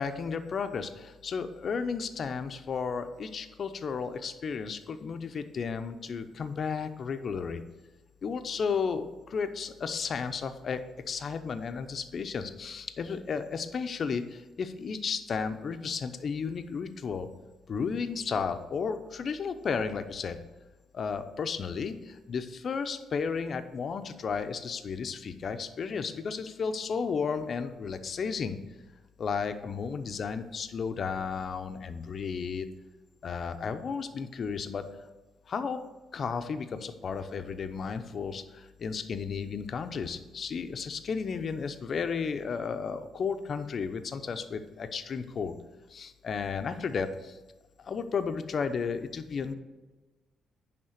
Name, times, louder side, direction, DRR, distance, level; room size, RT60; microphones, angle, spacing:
voice 1, 0.0-7.6 8.2-17.3 17.7-20.4 20.9-28.6 29.2-32.7 33.2-34.9 35.5-35.8 36.1-45.6 45.9-47.3 47.8-49.5, left 5 dB, 50° left, 9 dB, 0.7 m, -33 dB
10.0 x 3.6 x 6.5 m, 1.2 s
cardioid pair, 90°, 0 cm